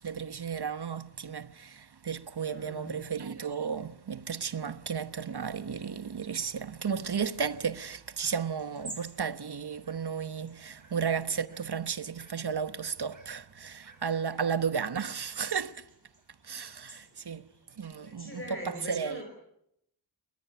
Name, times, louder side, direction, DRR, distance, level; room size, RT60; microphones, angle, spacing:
voice 1, 0.0-15.9 16.4-17.5 17.8-19.2, right 6 dB, 70° right, 1.1 m, -34 dB
voice 2, 2.5-2.9 17.1-17.2 18.0-19.2, equal, 30° left, 5.0 m, -42 dB
sound 1, 7.5-18.0, right 2 dB, 45° right, 7.0 m, -54 dB
20.5 x 19.5 x 9.4 m
wide cardioid pair, 80°, 41 cm